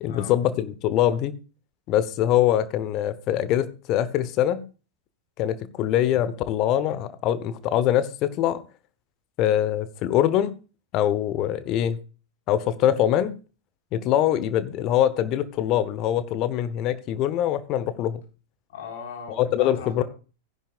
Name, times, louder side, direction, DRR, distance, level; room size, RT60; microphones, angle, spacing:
voice 1, 0.0-1.4 1.9-4.6 5.4-8.6 9.4-10.5 10.9-12.0 12.5-13.4 13.9-18.2 19.4-20.0, left 11 dB, 40° left, 1.1 m, -23 dB
voice 2, 18.7-20.0, left 6 dB, 55° left, 4.5 m, -39 dB
16.5 x 10.5 x 2.5 m
figure-of-eight pair, 90°, 0 cm